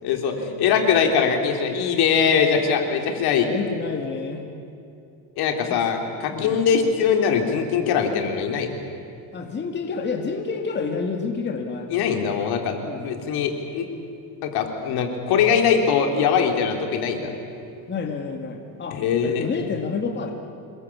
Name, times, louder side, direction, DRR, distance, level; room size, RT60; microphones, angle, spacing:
voice 1, 0.0-3.5 5.4-8.8 11.9-12.8 13.0-13.9 14.4-17.3 18.9-19.5, left 6 dB, 70° left, 4 dB, 3.7 m, -22 dB
voice 2, 3.4-4.4 5.7-5.8 6.3-6.7 9.3-11.9 12.8-13.1 17.9-20.3, left 5 dB, 25° left, 3 dB, 2.1 m, -29 dB
27.5 x 21.5 x 8.7 m, 2.6 s
cardioid pair, 140°, 40 cm